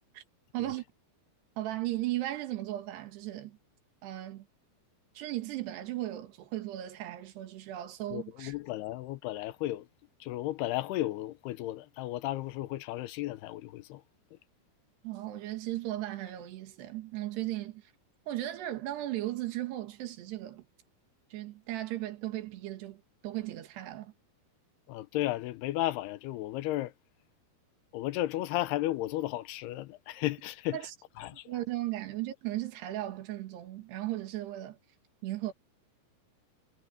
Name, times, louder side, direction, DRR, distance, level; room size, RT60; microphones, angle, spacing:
voice 1, 0.5-0.8 1.6-3.6 4.0-4.5 5.2-8.6 15.0-17.9 18.3-20.7 21.3-24.1 30.7-31.0 31.3-34.8 35.2-35.5, right 15 dB, 85° right, 3.8 m, -36 dB
voice 2, 8.1-9.9 10.2-14.0 24.9-26.9 27.9-30.8 31.2-31.5, left 16 dB, 85° left, 2.8 m, -34 dB
omnidirectional pair, 4.7 m